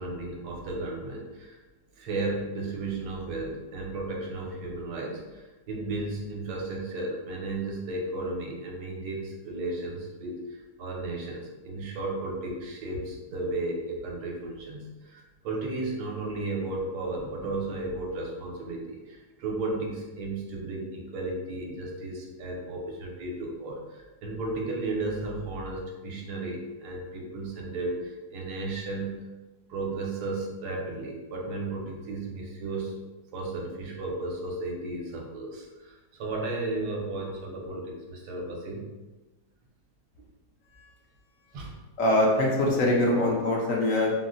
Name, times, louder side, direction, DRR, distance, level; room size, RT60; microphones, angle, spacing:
voice 1, 0.0-1.6 1.9-29.3 29.7-33.0 33.3-38.9 41.5-41.7, right 2 dB, 75° right, -1 dB, 1.2 m, -34 dB
voice 2, 42.0-44.1, left 1 dB, 65° left, -2 dB, 0.9 m, -23 dB
4.0 x 2.0 x 2.5 m, 1.2 s
omnidirectional pair, 1.7 m